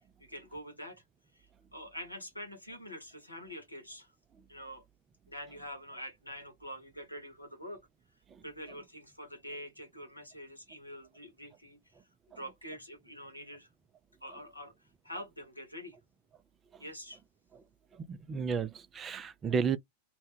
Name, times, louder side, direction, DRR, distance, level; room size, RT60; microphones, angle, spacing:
voice 1, 0.2-1.0 1.3-4.1 4.5-4.8 5.3-7.8 8.4-11.9 12.4-13.7 14.2-16.0 16.8-17.2, equal, 85° left, 0.8 m, -46 dB
voice 2, 18.1-19.8, right 6 dB, 25° right, 0.3 m, -32 dB
2.1 x 2.1 x 3.0 m
figure-of-eight pair, 90°, 0 cm